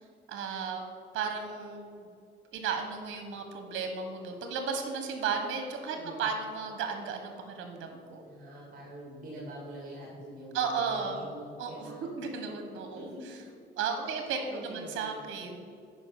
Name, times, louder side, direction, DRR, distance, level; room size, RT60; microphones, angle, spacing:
voice 1, 0.3-0.8 1.1-1.8 2.5-8.2 10.5-11.2 11.6-11.9 12.2-13.1 13.8-15.7, right 5 dB, 75° right, 5 dB, 1.2 m, -34 dB
voice 2, 6.0-6.3 8.2-12.2 12.9-13.4 14.0-14.2 14.5-15.4, right 1 dB, 45° right, -4 dB, 2.2 m, -45 dB
9.6 x 5.3 x 6.8 m, 2.4 s
cardioid pair, 90°, 20 cm